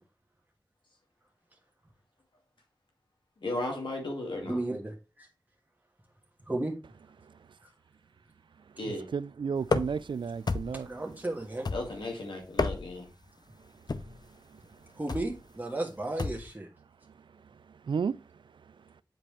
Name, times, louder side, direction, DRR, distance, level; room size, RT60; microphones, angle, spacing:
voice 1, 3.4-4.6 8.8-9.1 11.7-13.1, left 2 dB, 90° left, 2.0 m, -35 dB
voice 2, 4.4-5.3 6.5-6.7 10.8-11.7 15.0-16.7, right 2 dB, 20° right, 1.6 m, -34 dB
voice 3, 9.1-10.9 17.9-18.2, right 6 dB, 85° right, 0.3 m, -32 dB
sound 1, 9.7-10.1 10.5-10.9 11.7-12.1 12.4-13.1 13.9-14.2 15.1-15.4 16.2-16.5, left 3 dB, 60° left, 0.6 m, -31 dB
7.5 x 5.2 x 3.2 m
wide cardioid pair, 50°, 8 cm